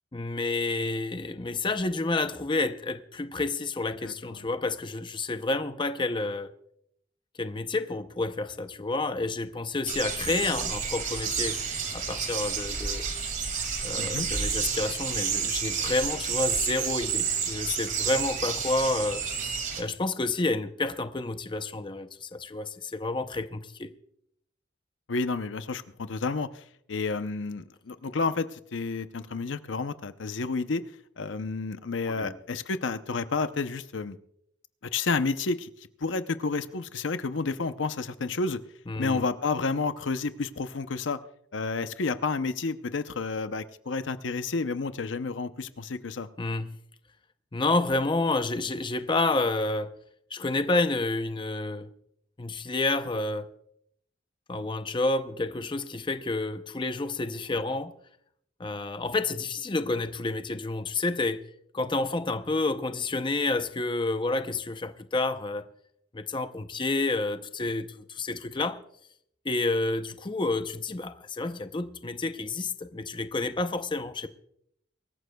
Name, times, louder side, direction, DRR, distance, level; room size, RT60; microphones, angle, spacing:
voice 1, 0.1-6.5 7.4-11.6 11.9-13.0 13.8-19.2 19.8-23.9 32.1-32.3 38.9-39.3 46.4-46.7 47.5-50.0 50.3-51.9 52.4-53.5 54.5-57.9 58.6-61.4 61.7-65.7 66.1-68.8 69.4-74.3, left 2 dB, 25° left, 0.6 m, -29 dB
voice 2, 4.0-4.5 14.0-14.3 25.1-30.8 31.2-34.2 34.9-38.6 39.0-41.2 41.5-46.3 57.5-57.6, left 4 dB, 80° left, 0.7 m, -30 dB
sound 1, 9.9-19.8, right 6 dB, 45° right, 2.3 m, -30 dB
24.0 x 14.5 x 2.3 m
head